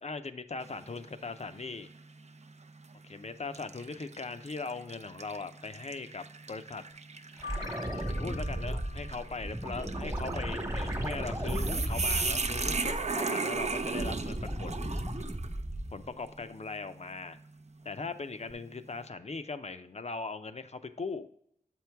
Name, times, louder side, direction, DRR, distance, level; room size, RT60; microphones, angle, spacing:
voice 1, 0.0-1.9 3.0-6.8 7.9-14.9 15.9-17.4 17.8-21.3, left 4 dB, 50° left, 10 dB, 0.5 m, -39 dB
sound 1, 0.6-1.1 1.6-1.7 2.7-2.9 3.5-15.6, right 4 dB, 50° right, 0.4 m, -37 dB
Keyboard (musical), 7.4-10.0, left 7 dB, 85° left, 1.0 m, -47 dB
sound 2, 7.4-13.2 13.6-16.1 18.5-18.6, right 1 dB, 25° right, 1.1 m, -35 dB
7.2 x 4.6 x 3.4 m, 0.70 s
wide cardioid pair, 50°, 14 cm